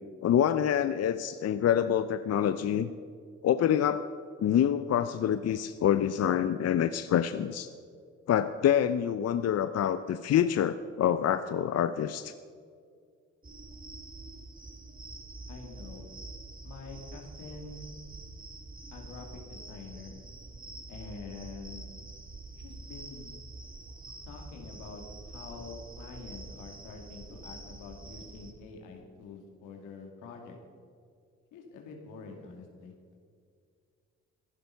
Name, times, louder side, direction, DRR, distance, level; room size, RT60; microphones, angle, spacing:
voice 1, 0.2-2.9 3.4-4.1 4.4-7.7 8.3-12.3, left 9 dB, 55° left, 11 dB, 0.6 m, -26 dB
sound 1, 13.4-28.5, right 2 dB, 30° right, 2.1 m, -46 dB
voice 2, 15.5-16.1 16.6-17.9 18.9-20.2 20.9-21.9 22.6-23.3 24.2-30.6 31.5-32.9, left 4 dB, 85° left, 2 dB, 2.3 m, -46 dB
15.0 x 11.0 x 5.6 m, 2.2 s
supercardioid pair, 55°, 30 cm